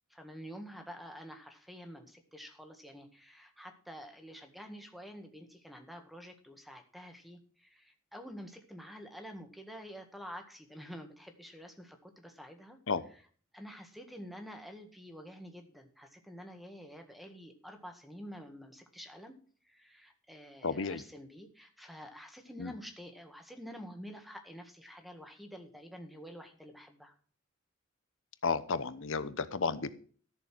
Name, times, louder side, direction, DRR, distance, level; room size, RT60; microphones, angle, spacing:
voice 1, 0.1-12.8 13.5-19.3 19.7-27.1, equal, ahead, 5 dB, 1.8 m, -48 dB
voice 2, 20.6-21.0 22.6-22.7 28.4-30.0, left 4 dB, 70° left, 14 dB, 1.0 m, -32 dB
13.5 x 6.9 x 6.2 m, 0.43 s
head